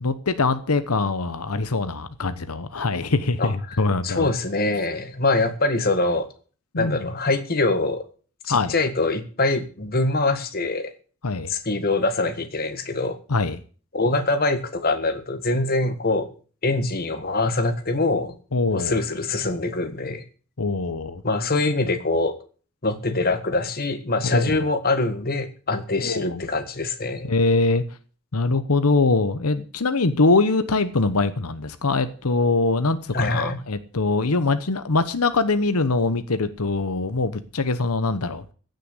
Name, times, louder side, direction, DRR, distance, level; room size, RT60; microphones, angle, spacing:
voice 1, 0.0-4.3 6.7-7.0 8.5-8.7 11.2-11.5 13.3-13.6 18.5-19.0 20.6-21.2 24.2-24.6 26.0-26.4 27.2-27.8 28.3-38.4, left 3 dB, 85° left, 1.0 m, -23 dB
voice 2, 3.4-6.3 6.8-8.0 8.4-10.9 11.5-13.2 13.9-16.3 16.6-18.3 18.7-20.2 21.2-22.3 22.8-27.3 33.1-33.6, left 2 dB, 45° left, 1.6 m, -24 dB
15.5 x 6.7 x 8.2 m
head